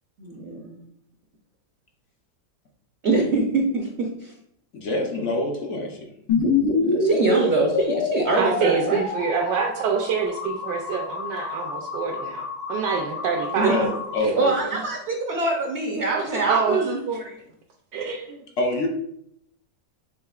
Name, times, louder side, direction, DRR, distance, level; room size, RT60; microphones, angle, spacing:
voice 1, 0.2-0.8 3.0-4.3 6.8-9.0 13.6-13.8 14.3-17.4, right 3 dB, 65° right, 0 dB, 0.6 m, -24 dB
voice 2, 4.7-6.1 13.7-14.7 18.6-18.9, left 1 dB, 60° left, 2 dB, 0.8 m, -26 dB
sound 1, 6.3-14.2, left 3 dB, 85° left, 1.6 m, -27 dB
voice 3, 8.3-13.9 14.7-14.8 16.3-16.8 17.9-18.4, right 5 dB, 80° right, 0 dB, 1.2 m, -26 dB
6.5 x 3.5 x 2.3 m, 0.73 s
omnidirectional pair, 1.9 m